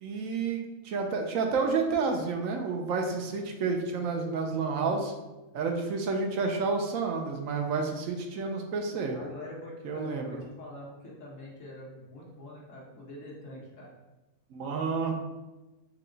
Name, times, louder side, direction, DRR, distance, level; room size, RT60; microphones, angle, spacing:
voice 1, 0.0-5.1 5.5-9.2 9.8-10.4 14.5-15.1, right 4 dB, 75° right, 3 dB, 1.0 m, -30 dB
voice 2, 9.1-13.9, left 1 dB, 65° left, -4 dB, 1.4 m, -44 dB
4.7 x 2.3 x 3.8 m, 1.1 s
omnidirectional pair, 1.4 m